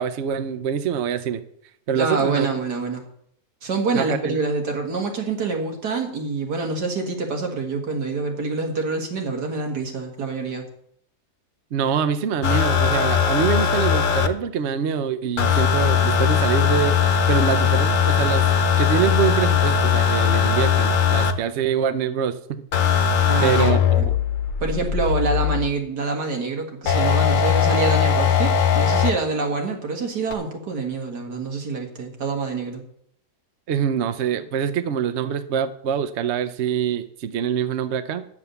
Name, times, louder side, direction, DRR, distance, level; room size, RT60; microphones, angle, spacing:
voice 1, 0.0-1.4 1.9-2.5 3.9-4.4 11.7-18.5 18.8-22.4 22.7-23.0 23.4-23.8 33.7-38.3, right 8 dB, 55° right, 11 dB, 0.8 m, -24 dB
voice 2, 2.0-3.0 3.6-10.7 23.3-24.1 24.6-32.8, right 4 dB, 80° right, 2 dB, 2.4 m, -26 dB
sound 1, 12.4-14.3 15.4-21.3 22.7-25.7 26.9-29.1 30.3-30.4, left 7 dB, 60° left, 1.1 m, -19 dB
9.8 x 7.2 x 6.9 m, 0.68 s
omnidirectional pair, 1.7 m